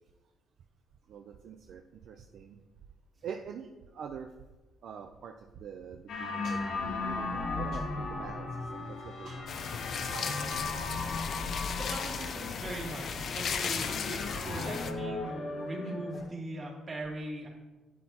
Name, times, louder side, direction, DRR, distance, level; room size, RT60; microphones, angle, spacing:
voice 1, 1.1-2.6 3.2-4.3 4.8-10.8 15.2-15.3 15.8-15.9, right 7 dB, 70° right, 5 dB, 0.5 m, -45 dB
sound 1, 6.1-16.2, left 3 dB, 75° left, 1.7 m, -37 dB
sound 2, 9.5-14.9, left 6 dB, 60° left, 0.6 m, -36 dB
voice 2, 11.7-17.5, right 1 dB, 40° right, -3 dB, 2.8 m, -40 dB
9.4 x 8.5 x 2.9 m, 1.2 s
cardioid pair, 90°, 0 cm